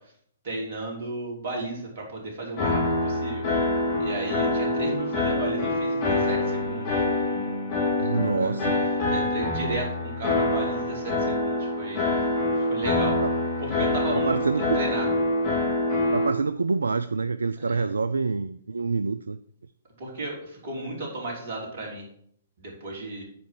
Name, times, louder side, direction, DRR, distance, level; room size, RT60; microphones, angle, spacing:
voice 1, 0.4-3.4 4.0-7.1 8.0-8.7 9.1-12.2 12.5-13.2 13.6-15.1 17.6-17.9 20.0-22.0 22.6-23.2, right 2 dB, 50° right, 0 dB, 3.3 m, -34 dB
sound 1, 2.6-16.3, left 2 dB, 40° left, 3.8 m, -25 dB
voice 2, 8.0-8.8 13.2-13.3 14.1-14.8 16.1-19.4, right 4 dB, 75° right, 12 dB, 0.3 m, -26 dB
8.4 x 5.3 x 5.8 m, 0.64 s
figure-of-eight pair, 120°, 0 cm